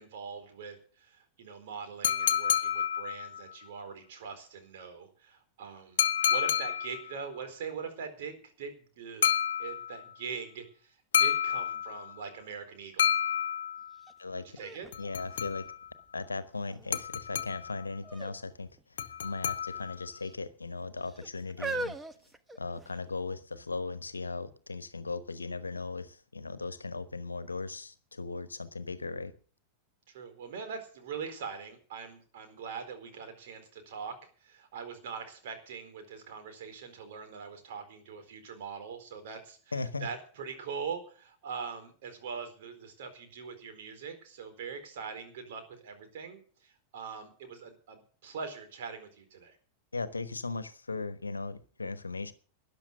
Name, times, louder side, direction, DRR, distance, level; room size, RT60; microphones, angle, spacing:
voice 1, 0.0-6.0 6.3-9.3 9.6-13.1 14.6-14.9 30.1-49.6, right 6 dB, 60° right, 4.3 m, -42 dB
sound 1, 2.0-3.5 6.0-7.1 9.2-10.1 11.1-12.2 13.0-14.0 14.9-15.9 16.9-17.8 19.0-20.1, left 9 dB, 65° left, 1.1 m, -29 dB
sound 2, 14.0-14.1 14.6-16.1 16.7-17.2 18.0-18.4 18.7-18.8 19.7-20.3 21.0-23.1 23.8-23.9, right 3 dB, 10° right, 1.1 m, -40 dB
voice 2, 14.2-14.6 15.0-15.7 16.1-22.0 22.6-29.3 39.7-40.1 49.9-52.3, left 3 dB, 85° left, 1.1 m, -38 dB
13.5 x 10.5 x 6.5 m
figure-of-eight pair, 90°, 0 cm